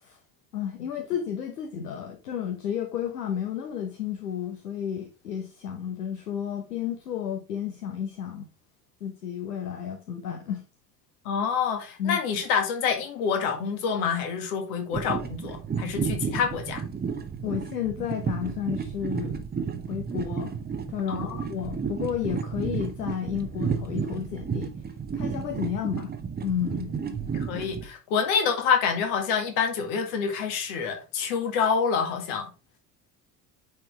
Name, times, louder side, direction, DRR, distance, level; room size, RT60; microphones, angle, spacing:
voice 1, 0.5-8.5 9.0-10.6 12.0-12.2 17.4-19.4 19.9-20.5 20.9-24.7 25.1-26.1 26.4-26.9, left 9 dB, 75° left, 1.0 m, -32 dB
voice 2, 11.3-16.8 21.1-21.4 27.3-32.5, left 6 dB, 60° left, 1.8 m, -27 dB
sound 1, 14.9-27.9, right 6 dB, 20° right, 1.1 m, -32 dB
9.6 x 4.4 x 3.3 m
figure-of-eight pair, 65°, 48 cm